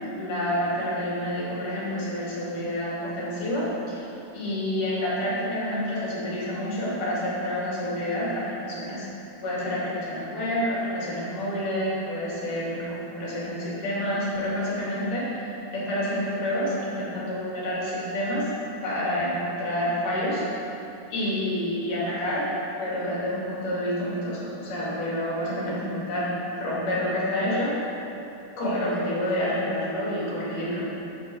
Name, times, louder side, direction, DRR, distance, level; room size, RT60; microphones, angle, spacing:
voice 1, 0.2-4.1 4.3-9.0 9.4-15.3 15.7-18.5 18.8-20.4 21.1-22.5 22.8-27.8 28.6-30.9, equal, 80° left, -7 dB, 4.6 m, -28 dB
14.0 x 9.1 x 4.8 m, 2.9 s
omnidirectional pair, 3.6 m